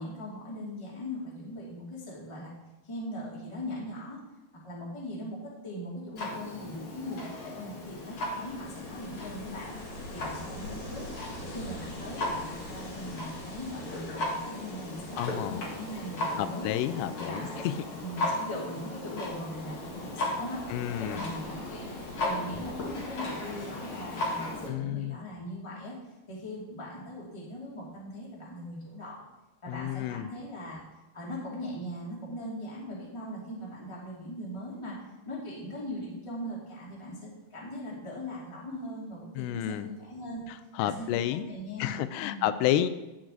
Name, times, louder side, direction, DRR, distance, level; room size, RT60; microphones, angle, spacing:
voice 1, 0.0-2.5 2.8-4.2 4.6-9.7 10.1-11.1 11.4-16.7 17.2-17.7 18.0-21.9 22.2-25.9 26.3-29.2 29.6-30.8 31.1-40.4 40.8-42.5, equal, 10° left, -5 dB, 1.4 m, -40 dB
Clock, 6.2-24.7, left 2 dB, 55° left, 1.5 m, -37 dB
Ocean, 7.3-24.5, left 1 dB, 35° left, 2.6 m, -47 dB
voice 2, 15.2-15.6 16.4-17.8 20.7-21.2 24.7-25.2 29.7-30.3 39.4-39.9 40.5-41.4 41.8-42.9, left 12 dB, 85° left, 12 dB, 2.7 m, -30 dB
11.0 x 7.4 x 3.9 m, 1.0 s
omnidirectional pair, 4.9 m